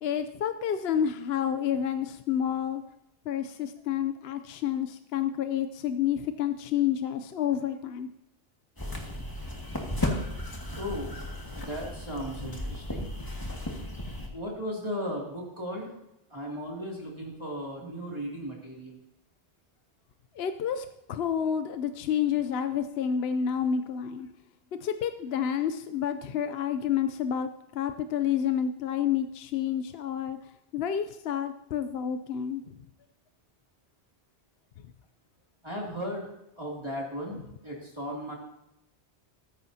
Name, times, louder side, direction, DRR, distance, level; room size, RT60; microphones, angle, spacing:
voice 1, 0.0-2.8 3.2-8.1 20.3-24.3 24.8-32.8 34.8-34.9, left 9 dB, 65° left, 9 dB, 0.8 m, -29 dB
sound 1, 8.8-14.3, left 1 dB, 20° left, 1.8 m, -35 dB
voice 2, 10.8-11.1 11.5-13.1 14.3-15.9 16.3-19.0 35.6-36.3 36.6-38.3, equal, 25° right, -3 dB, 2.6 m, -36 dB
15.0 x 14.0 x 2.8 m, 0.86 s
omnidirectional pair, 1.2 m